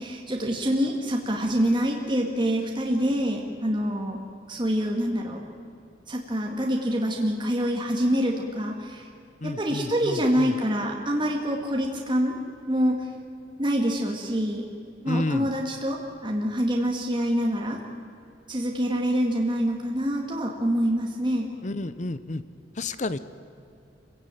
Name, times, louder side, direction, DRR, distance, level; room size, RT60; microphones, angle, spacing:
voice 1, 0.0-4.2 4.5-5.4 6.1-9.1 9.4-12.3 12.7-13.1 13.6-14.7 15.0-17.8 18.5-21.5, equal, 25° right, 0 dB, 2.0 m, -26 dB
voice 2, 9.4-10.6 15.1-15.5 21.6-22.4 22.8-23.2, left 2 dB, 45° left, 14 dB, 0.7 m, -30 dB
27.0 x 16.5 x 9.1 m, 2.6 s
head